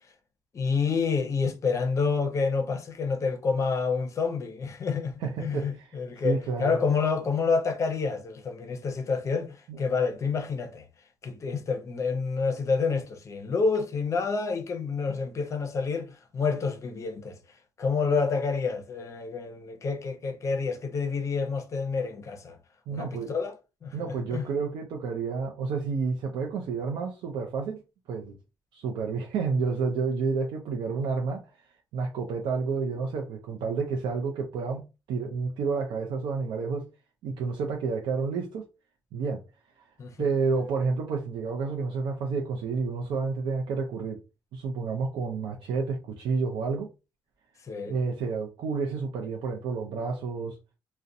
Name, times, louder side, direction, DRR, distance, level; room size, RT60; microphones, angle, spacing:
voice 1, 0.5-10.9 11.2-17.4 17.8-22.6 22.9-23.5 23.8-24.5 40.0-40.2 47.7-48.0, left 5 dB, 40° left, 0.6 m, -28 dB
voice 2, 5.2-6.0 6.2-6.8 9.7-9.8 22.9-23.3 23.9-27.8 28.1-28.4 28.7-31.4 31.9-36.9 37.2-38.6 39.1-39.4 39.8-39.9 40.2-44.2 44.5-46.9 47.9-50.6, right 4 dB, 85° right, 0.4 m, -30 dB
2.4 x 2.1 x 2.6 m
cardioid pair, 105°, 8 cm